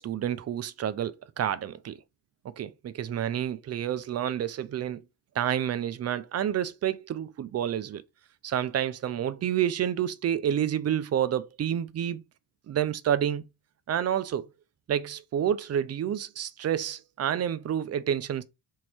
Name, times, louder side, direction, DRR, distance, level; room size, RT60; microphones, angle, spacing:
voice 1, 0.0-2.0 2.4-5.0 5.4-8.0 8.4-12.2 12.7-13.4 13.9-14.5 14.9-18.4, right 10 dB, 35° right, 0.4 m, -29 dB
3.0 x 2.7 x 4.3 m
supercardioid pair, 65°, 46 cm